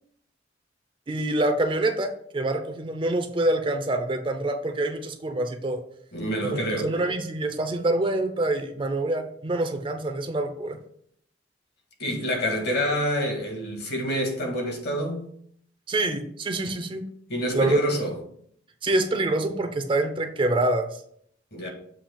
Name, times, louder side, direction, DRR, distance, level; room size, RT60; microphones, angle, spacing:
voice 1, 1.1-5.8 6.5-10.8 15.9-17.0 17.5-17.8 18.8-20.9, right 2 dB, 30° right, 0.5 m, -26 dB
voice 2, 6.1-6.9 12.0-15.2 17.3-18.1 21.5-21.7, equal, 60° left, 1.6 m, -27 dB
7.1 x 2.8 x 5.1 m
head